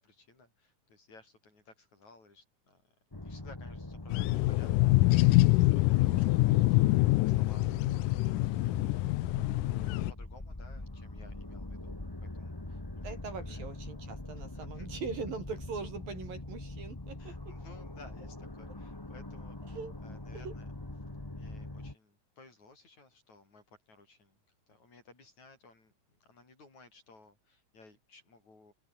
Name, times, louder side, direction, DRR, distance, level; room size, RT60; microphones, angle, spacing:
voice 1, 0.0-2.9 3.2-8.4 9.7-13.2 13.4-13.7 14.5-14.9 17.2-20.7 21.3-24.4 24.7-28.7, left 3 dB, 55° left, 8.8 m, -58 dB
sound 1, 3.1-21.9, left 2 dB, 25° left, 0.5 m, -43 dB
sound 2, 4.1-10.1, left 19 dB, 80° left, 2.0 m, -25 dB
voice 2, 13.0-17.5 19.7-19.9 20.3-20.5, right 5 dB, 85° right, 7.6 m, -41 dB
open air
omnidirectional pair, 3.9 m